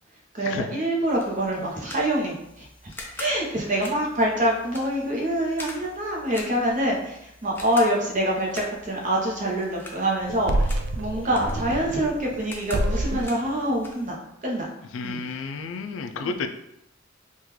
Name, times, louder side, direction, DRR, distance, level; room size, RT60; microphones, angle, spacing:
voice 1, 0.3-2.7 3.2-14.7 15.0-15.2 16.2-16.3, right 1 dB, 40° right, -2 dB, 0.8 m, -26 dB
sound 1, 1.1-14.2, left 2 dB, 10° left, 0.4 m, -44 dB
sound 2, 10.2-12.4 12.7-13.4, right 1 dB, 60° right, 0.3 m, -27 dB
voice 2, 14.9-16.5, left 4 dB, 85° left, 7 dB, 0.3 m, -31 dB
3.6 x 2.3 x 3.0 m, 0.81 s
head